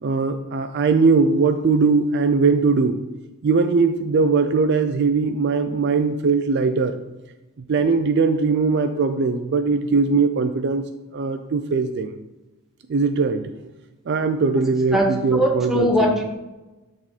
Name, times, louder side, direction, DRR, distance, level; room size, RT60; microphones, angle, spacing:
voice 1, 0.0-3.0 3.4-7.0 7.7-10.8 11.1-12.1 12.9-13.5 14.1-16.2, right 4 dB, 50° right, 9 dB, 0.4 m, -20 dB
voice 2, 14.9-16.2, equal, ahead, 0 dB, 0.9 m, -20 dB
8.8 x 3.7 x 4.1 m, 1.1 s
head